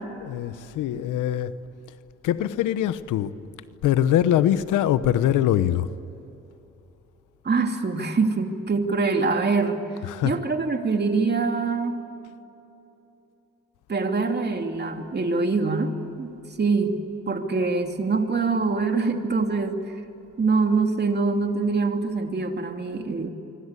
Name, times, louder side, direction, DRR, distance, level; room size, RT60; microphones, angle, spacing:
voice 1, 0.2-1.5 2.2-3.3 3.8-5.9 10.0-10.4, left 11 dB, 85° left, 1.0 m, -23 dB
voice 2, 7.4-9.8 10.2-12.0 13.9-15.9 16.2-16.3 16.6-17.0 17.3-19.8 20.4-23.3, right 4 dB, 35° right, 2.8 m, -24 dB
25.0 x 24.5 x 8.4 m
cardioid pair, 90°, 30 cm